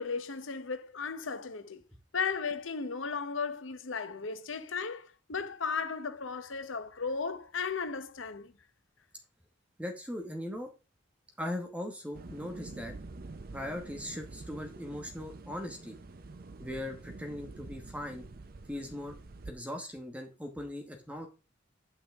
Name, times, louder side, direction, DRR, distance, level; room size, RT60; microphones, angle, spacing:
voice 1, 0.0-1.8 2.1-8.5, left 5 dB, 90° left, 0.9 m, -35 dB
voice 2, 9.8-10.7 11.4-12.9 13.5-16.0 16.6-18.3 18.7-19.1 19.5-21.3, left 1 dB, 5° right, 1.1 m, -39 dB
sound 1, 12.1-19.5, right 3 dB, 50° right, 0.7 m, -47 dB
9.7 x 5.8 x 3.6 m
head